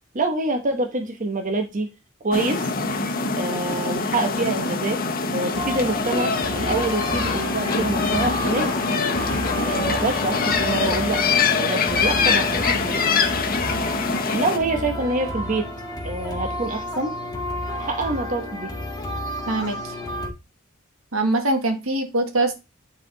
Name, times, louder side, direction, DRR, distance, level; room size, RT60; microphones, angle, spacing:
voice 1, 0.1-1.9 2.2-2.7 3.4-5.0 5.3-8.8 9.5-11.2 11.5-13.1 14.3-15.7 16.0-17.1 17.7-18.7, right 2 dB, 40° right, 5 dB, 1.0 m, -26 dB
sound 1, 2.3-14.6, left 4 dB, 45° left, 1.1 m, -24 dB
sound 2, 5.5-20.3, left 1 dB, 20° left, 1.7 m, -31 dB
voice 2, 19.5-19.9 21.1-22.5, right 2 dB, 75° right, 5 dB, 1.6 m, -23 dB
9.7 x 4.2 x 3.9 m, 0.26 s
head